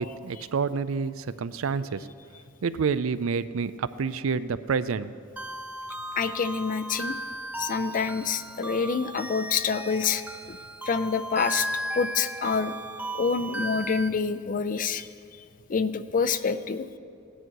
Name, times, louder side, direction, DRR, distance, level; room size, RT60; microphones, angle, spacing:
voice 1, 0.0-2.0 2.6-5.1, right 5 dB, 85° right, 14 dB, 0.5 m, -28 dB
sound 1, 5.4-14.1, right 1 dB, 10° right, 0.5 m, -36 dB
voice 2, 6.1-7.2 7.6-10.2 10.5-10.6 10.9-11.7 11.9-12.8 13.1-15.1 15.7-16.9, left 5 dB, 40° left, 13 dB, 0.5 m, -27 dB
16.5 x 10.0 x 4.7 m, 2.4 s
head